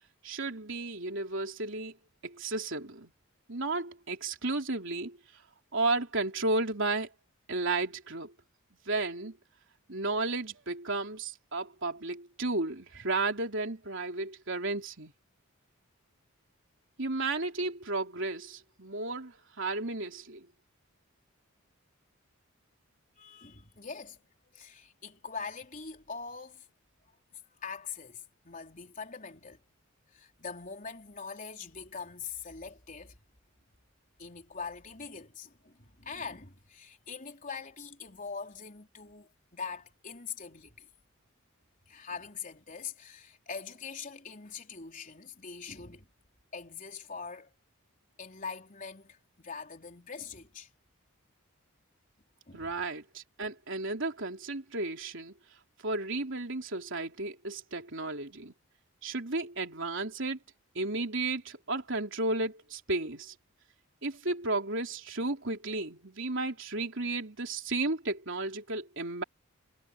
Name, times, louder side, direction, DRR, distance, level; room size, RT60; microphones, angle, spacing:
voice 1, 0.2-2.0 2.2-3.1 3.5-5.2 5.7-7.1 7.5-8.3 8.9-9.4 9.9-15.1 17.0-20.5 52.5-55.3 55.8-58.5 59.0-60.4 60.8-63.3 64.0-69.2, right 2 dB, 60° right, 3.8 m, -33 dB
voice 2, 23.2-24.2 24.5-26.7 27.3-29.6 30.1-33.2 34.2-40.9 41.9-46.1 46.5-47.5 48.2-50.7 52.5-52.7, left 5 dB, 40° left, 3.9 m, -43 dB
head